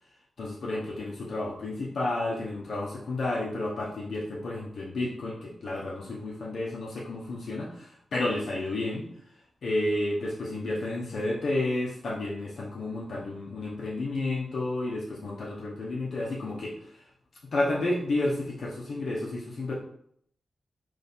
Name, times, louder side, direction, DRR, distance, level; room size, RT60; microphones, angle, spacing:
voice 1, 0.4-9.0 9.6-17.1 17.5-19.8, left 2 dB, 60° left, -5 dB, 0.8 m, -31 dB
4.1 x 3.3 x 3.6 m, 0.67 s
wide cardioid pair, 145°, 0 cm